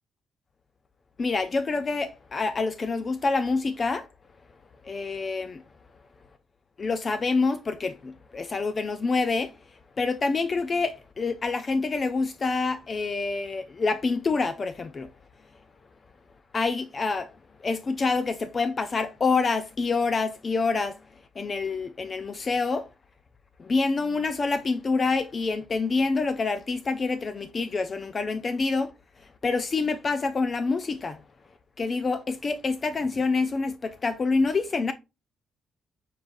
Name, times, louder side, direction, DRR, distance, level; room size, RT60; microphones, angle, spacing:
voice 1, 1.2-4.1 4.8-5.6 6.8-9.5 10.0-15.1 16.5-17.3 17.6-21.0 21.4-22.9 23.6-28.9 29.4-31.2 31.8-34.9, left 4 dB, 40° left, 0.5 m, -27 dB
4.9 x 3.6 x 2.6 m
cardioid pair, 90°, 0 cm